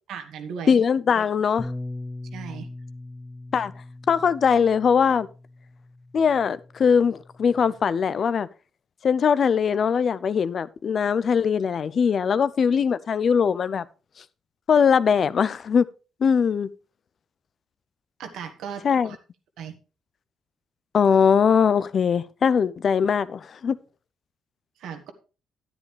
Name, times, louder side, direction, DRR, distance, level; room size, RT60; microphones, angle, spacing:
voice 1, 0.1-0.8 2.3-2.7 18.2-19.2 19.6-19.7 24.8-25.1, right 7 dB, 80° right, 1.5 m, -36 dB
voice 2, 0.7-1.7 3.5-3.7 4.1-5.3 6.1-8.5 9.0-13.8 14.7-15.9 16.2-16.7 18.8-19.2 20.9-23.8, left 6 dB, 50° left, 0.5 m, -21 dB
Bass guitar, 1.6-7.8, left 2 dB, 20° left, 1.2 m, -40 dB
10.0 x 9.8 x 3.3 m
cardioid pair, 90°, 0 cm